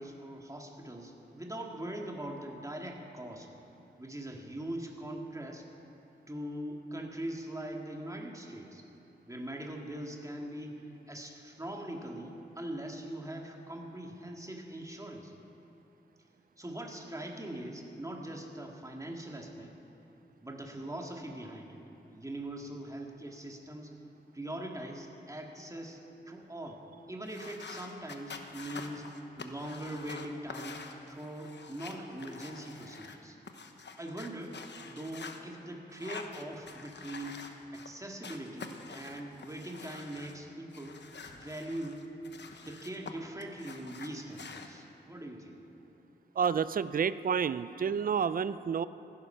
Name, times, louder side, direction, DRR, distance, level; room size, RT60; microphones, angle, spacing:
voice 1, 0.0-3.5 4.0-5.7 6.3-8.8 9.3-15.3 16.6-19.7 20.4-21.8 22.1-23.9 24.3-26.0 26.3-26.8 27.1-33.4 34.0-34.6 34.8-37.4 37.7-41.0 41.3-42.0 42.6-45.6, right 1 dB, 15° right, 1 dB, 2.0 m, -41 dB
sound 1, 27.2-33.2 33.4-35.4 35.9-37.9 38.2-40.4 40.7-43.1 43.4-44.7, left 4 dB, 70° left, 1.0 m, -47 dB
voice 2, 46.4-48.9, right 7 dB, 50° right, 15 dB, 0.4 m, -29 dB
16.0 x 10.0 x 5.7 m, 2.9 s
cardioid pair, 50°, 19 cm